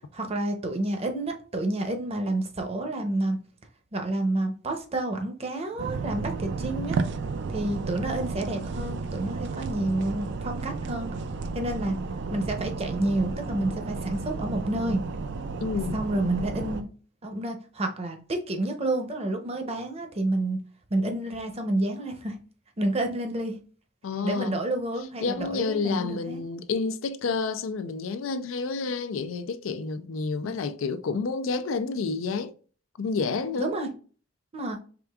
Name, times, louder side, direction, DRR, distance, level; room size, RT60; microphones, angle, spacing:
voice 1, 0.1-3.4 3.9-7.0 7.5-11.1 11.5-11.9 12.3-15.0 15.9-16.9 17.2-20.6 20.9-22.4 22.8-23.6 24.2-26.4 30.4-30.6 33.6-33.9 34.5-34.8, right 1 dB, 30° right, 0.7 m, -29 dB
sound 1, 5.8-16.8, right 4 dB, 60° right, 0.4 m, -32 dB
voice 2, 15.6-16.0 24.0-24.5 25.2-32.5 33.0-33.7, left 4 dB, 90° left, 0.4 m, -29 dB
4.9 x 3.4 x 2.3 m
head